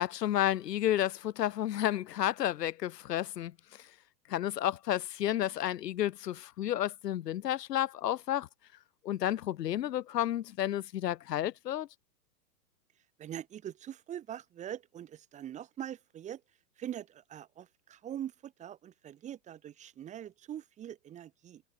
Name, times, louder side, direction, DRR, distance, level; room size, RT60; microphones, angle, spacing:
voice 1, 0.0-3.5 4.3-8.5 9.0-11.9, left 12 dB, 90° left, 0.9 m, -31 dB
voice 2, 13.2-16.4 16.8-21.6, right 10 dB, 15° right, 1.0 m, -43 dB
hypercardioid pair, 145°, 47 cm